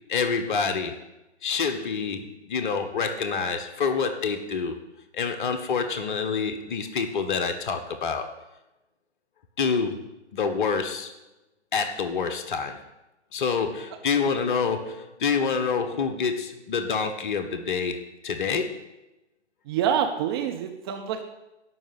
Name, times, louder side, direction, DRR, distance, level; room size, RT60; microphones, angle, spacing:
voice 1, 0.1-1.0 1.4-4.8 5.1-8.3 9.6-11.1 11.7-12.8 13.3-18.7, left 5 dB, 45° left, 7 dB, 1.2 m, -27 dB
voice 2, 19.7-21.2, right 8 dB, 20° right, 4 dB, 0.6 m, -26 dB
11.5 x 5.2 x 8.3 m, 0.96 s
figure-of-eight pair, 125°, 35 cm